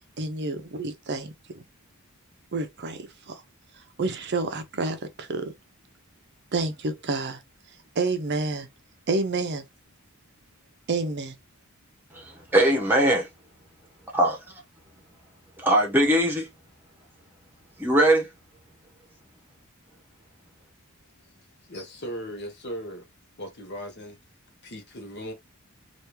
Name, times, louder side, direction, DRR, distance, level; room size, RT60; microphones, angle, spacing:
voice 1, 0.2-1.3 2.5-3.4 4.0-5.5 6.5-7.4 8.0-8.7 9.1-9.6 10.9-11.3, right 3 dB, 50° right, 0.6 m, -29 dB
voice 2, 12.1-13.3 14.1-14.3 15.6-16.5 17.8-18.3, right 1 dB, 10° right, 1.0 m, -21 dB
voice 3, 21.6-23.1 23.4-24.2 24.6-25.3, equal, 50° left, 1.1 m, -37 dB
3.4 x 2.5 x 2.9 m
head